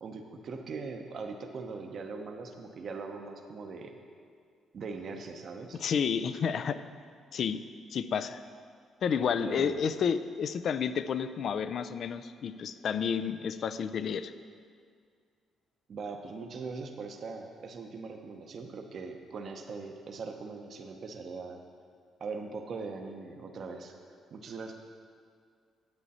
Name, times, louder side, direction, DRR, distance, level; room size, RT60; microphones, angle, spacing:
voice 1, 0.0-4.0 4.7-5.8 9.4-9.8 15.9-21.6 22.2-23.9 24.3-24.7, right 4 dB, 55° right, 3 dB, 0.8 m, -41 dB
voice 2, 5.8-6.8 7.3-7.6 7.9-8.4 9.0-14.3, left 7 dB, 60° left, 13 dB, 0.4 m, -30 dB
9.9 x 8.1 x 4.2 m, 2.1 s
cardioid pair, 90°, 0 cm